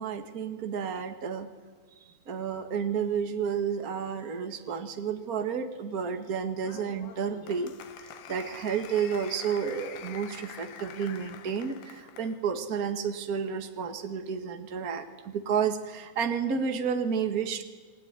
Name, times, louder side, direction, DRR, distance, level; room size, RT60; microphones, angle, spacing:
voice 1, 0.0-1.5 2.0-7.7 8.0-17.6, right 7 dB, 85° right, 5 dB, 0.8 m, -31 dB
Applause, 6.6-12.4, left 9 dB, 70° left, 3.3 m, -46 dB
29.0 x 20.5 x 9.7 m, 1.4 s
omnidirectional pair, 4.7 m